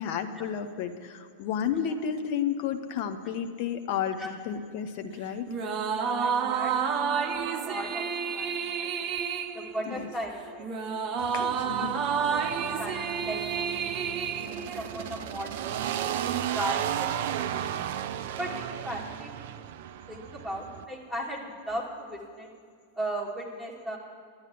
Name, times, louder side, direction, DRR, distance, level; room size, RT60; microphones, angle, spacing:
voice 1, 0.0-5.5 9.9-10.1 11.3-12.0, left 8 dB, 45° left, 7 dB, 0.9 m, -32 dB
sound 1, 5.5-15.2, right 6 dB, 35° right, 0.9 m, -30 dB
voice 2, 5.9-6.7 7.3-8.0 8.3-9.1 9.5-10.7 11.2-13.9 14.4-17.6 18.3-19.5 20.1-22.5 22.9-24.0, right 1 dB, 10° left, -3 dB, 2.9 m, -38 dB
sound 2, 11.2-20.8, right 10 dB, 50° right, 0.5 m, -34 dB
11.0 x 9.7 x 8.6 m, 2.1 s
figure-of-eight pair, 90°, 0 cm